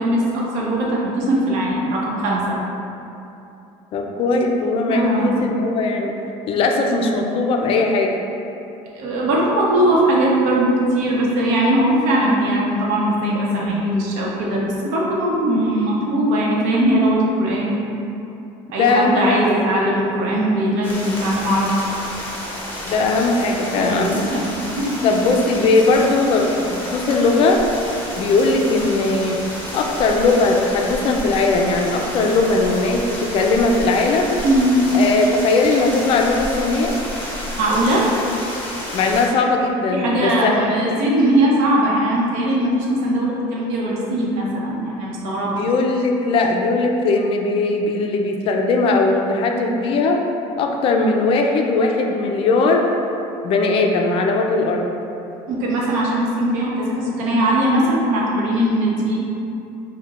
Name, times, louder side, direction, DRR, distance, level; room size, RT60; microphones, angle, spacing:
voice 1, 0.0-2.6 4.9-5.4 8.9-17.8 18.7-21.7 23.8-25.1 34.4-34.9 37.6-38.1 39.9-45.6 55.5-59.2, right 1 dB, 75° right, -3 dB, 0.8 m, -20 dB
voice 2, 3.9-6.2 6.5-8.2 18.8-19.6 22.9-24.3 25.0-27.6 28.2-29.4 29.7-34.4 34.9-37.0 38.9-41.0 45.5-50.2 50.6-52.9 53.4-54.9, left 3 dB, 45° left, 2 dB, 0.4 m, -19 dB
sound 1, 20.8-39.3, left 1 dB, 15° left, 0.9 m, -31 dB
6.1 x 2.2 x 2.4 m, 2.8 s
cardioid pair, 125°, 13 cm